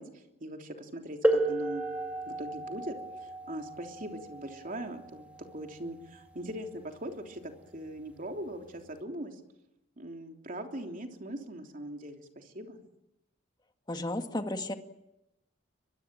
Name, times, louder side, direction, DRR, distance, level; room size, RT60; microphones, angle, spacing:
voice 1, 0.0-1.9 2.3-2.9 3.2-5.3 5.5-9.4 10.0-12.8, right 1 dB, 45° right, 4 dB, 3.3 m, -41 dB
sound 1, 1.2-6.7 7.7-7.8 8.7-8.9, right 1 dB, 5° right, 2.2 m, -33 dB
voice 2, 13.9-14.7, left 1 dB, 20° left, 6 dB, 2.0 m, -33 dB
23.0 x 22.0 x 9.0 m, 0.90 s
head